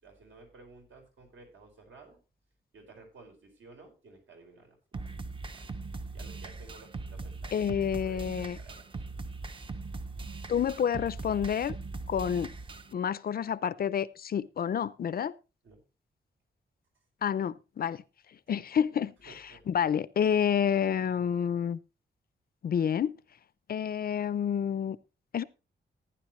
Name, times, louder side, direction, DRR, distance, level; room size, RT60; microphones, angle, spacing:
voice 1, 0.0-2.2 2.7-4.8 5.0-5.1 5.5-5.7 6.1-8.9 9.4-9.5 15.6-15.8 19.2-19.6 20.2-20.5, right 3 dB, 80° right, 5.0 m, -54 dB
sound 1, 4.9-12.9, right 3 dB, 25° right, 0.7 m, -40 dB
voice 2, 7.5-8.6 10.5-11.7 12.1-12.5 12.9-15.3 17.2-18.0 18.5-19.1 19.7-21.8 22.6-23.2 23.7-25.0 25.3-25.4, left 8 dB, 50° left, 0.5 m, -29 dB
15.0 x 9.8 x 3.1 m
wide cardioid pair, 170°, 20 cm